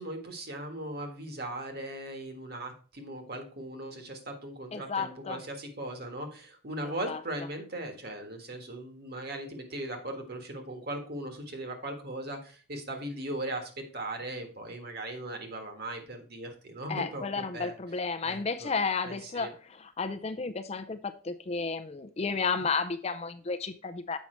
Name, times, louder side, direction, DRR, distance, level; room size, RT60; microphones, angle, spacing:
voice 1, 0.0-17.7 18.2-18.7 19.0-19.5, right 1 dB, 50° right, 5 dB, 1.5 m, -38 dB
voice 2, 4.7-5.4 6.8-7.2 16.9-24.2, left 4 dB, 30° left, 10 dB, 0.4 m, -32 dB
7.3 x 5.4 x 4.4 m, 0.39 s
head